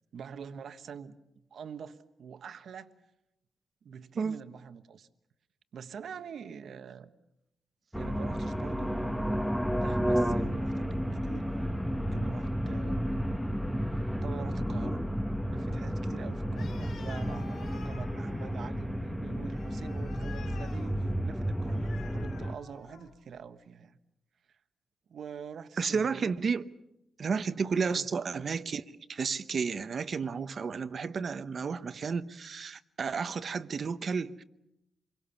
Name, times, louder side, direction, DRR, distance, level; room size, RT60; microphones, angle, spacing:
voice 1, 0.1-1.2 1.5-2.9 3.8-5.1 5.7-7.1 7.9-13.3 13.8-15.1 15.5-24.0 24.5-24.6 25.1-26.3 27.9-28.1, right 7 dB, 70° right, 1.3 m, -45 dB
sound 1, 7.9-22.5, equal, ahead, 0.9 m, -32 dB
Animal, 16.5-23.3, left 5 dB, 80° left, 4.2 m, -51 dB
voice 2, 25.8-26.6 27.2-28.8 29.1-34.4, right 5 dB, 45° right, 0.9 m, -32 dB
27.0 x 23.5 x 7.1 m
wide cardioid pair, 155°, 0 cm